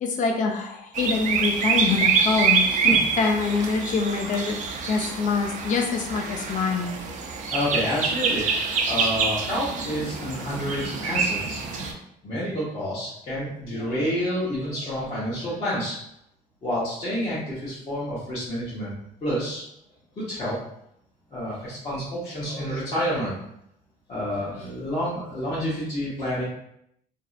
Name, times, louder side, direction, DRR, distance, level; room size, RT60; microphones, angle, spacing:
voice 1, 0.0-4.6 4.8-7.1, left 4 dB, 50° left, 3 dB, 0.4 m, -25 dB
sound 1, 0.9-11.9, right 5 dB, 50° right, 0.4 m, -26 dB
voice 2, 2.8-3.2 7.5-11.6 12.2-16.0 16.6-18.9 19.2-19.6 20.2-20.6 21.3-23.4 24.1-26.4, equal, 35° left, -11 dB, 0.9 m, -29 dB
2.6 x 2.0 x 2.5 m, 0.76 s
cardioid pair, 110°, 17 cm